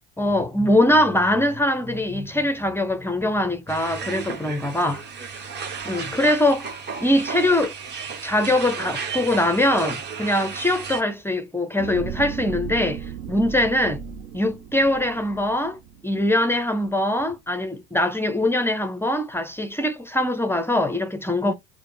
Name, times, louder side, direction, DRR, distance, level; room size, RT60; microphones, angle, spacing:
voice 1, 0.2-5.0 5.8-6.6 7.0-7.7 8.2-14.0 14.3-21.5, left 1 dB, 10° left, 0.5 m, -22 dB
sound 1, 3.7-11.0, right 6 dB, 35° right, 1.1 m, -33 dB
sound 2, 11.8-16.3 16.8-16.9, right 6 dB, 70° right, 0.8 m, -35 dB
4.8 x 2.0 x 3.1 m
hypercardioid pair, 95°, 31 cm